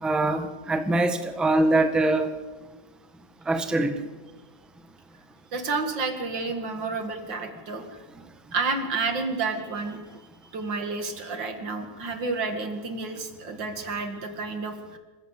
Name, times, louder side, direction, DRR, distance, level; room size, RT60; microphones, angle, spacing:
voice 1, 0.0-2.3 3.5-3.9, right 2 dB, ahead, 8 dB, 1.2 m, -23 dB
voice 2, 5.5-8.0 8.5-10.0 10.5-15.0, right 3 dB, 85° right, 6 dB, 2.9 m, -30 dB
26.0 x 15.5 x 8.3 m, 1.3 s
omnidirectional pair, 1.9 m